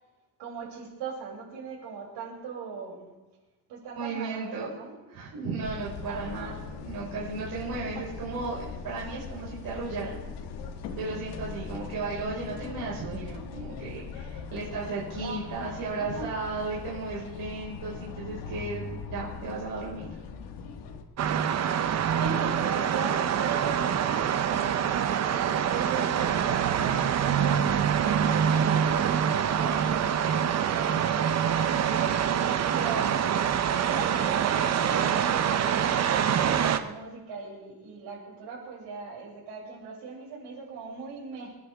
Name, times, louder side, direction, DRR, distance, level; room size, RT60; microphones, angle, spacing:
voice 1, 0.4-3.1 3.7-4.9 6.0-6.6 7.9-8.0 15.2-16.6 21.9-33.1 33.8-41.5, right 5 dB, 75° right, -3 dB, 6.9 m, -39 dB
voice 2, 3.9-4.7 5.1-6.5 6.8-10.2 11.0-20.1, right 3 dB, 55° right, -6 dB, 5.2 m, -35 dB
sound 1, 5.6-21.0, left 5 dB, 75° left, 1.8 m, -40 dB
sound 2, 21.2-36.8, right 8 dB, 40° right, 0.8 m, -25 dB
27.5 x 11.0 x 3.6 m, 1.1 s
cardioid pair, 145°, 42 cm